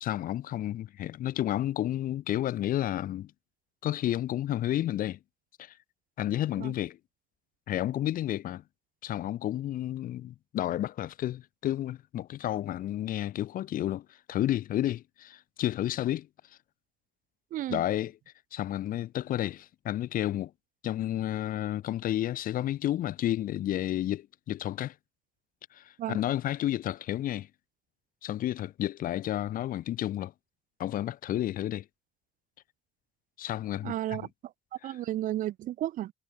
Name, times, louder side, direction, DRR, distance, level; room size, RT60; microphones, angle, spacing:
voice 1, 0.0-3.3 3.8-5.2 5.6-5.7 6.2-7.0 7.7-8.6 9.0-16.3 17.7-18.1 18.5-20.5 20.8-24.9 25.7-27.5 28.2-30.3 30.8-31.8 33.4-34.3 34.8-34.9, left 13 dB, 55° left, 0.6 m, -31 dB
voice 2, 17.5-17.8 26.0-26.2 33.8-34.3 34.8-36.1, right 13 dB, 50° right, 0.4 m, -33 dB
cardioid pair, 110°, 17 cm